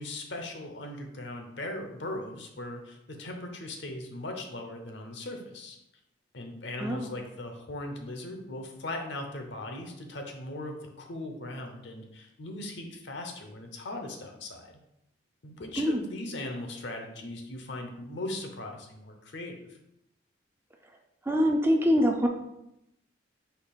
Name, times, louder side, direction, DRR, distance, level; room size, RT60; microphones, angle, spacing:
voice 1, 0.0-5.8 6.3-14.7 15.4-19.8, left 1 dB, 65° left, 4 dB, 0.7 m, -39 dB
voice 2, 6.8-7.1 15.8-16.0 21.3-22.3, equal, 10° right, 2 dB, 0.3 m, -24 dB
4.5 x 2.9 x 4.0 m, 0.83 s
head